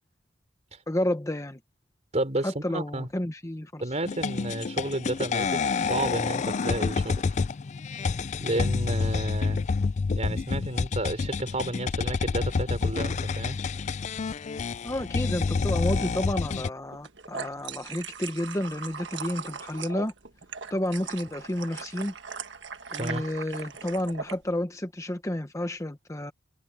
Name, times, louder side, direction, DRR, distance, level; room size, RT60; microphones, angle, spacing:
voice 1, 0.9-1.6 2.4-3.8 14.8-20.1 20.7-22.1 22.9-26.3, left 1 dB, 15° left, 1.0 m, -30 dB
voice 2, 2.1-3.1 3.8-7.2 8.4-9.6 10.2-13.6 22.9-23.2, right 1 dB, 35° right, 3.6 m, -31 dB
sound 1, 4.0-16.7, left 4 dB, 40° left, 0.4 m, -28 dB
sound 2, 16.9-24.4, right 6 dB, 70° right, 1.6 m, -39 dB
head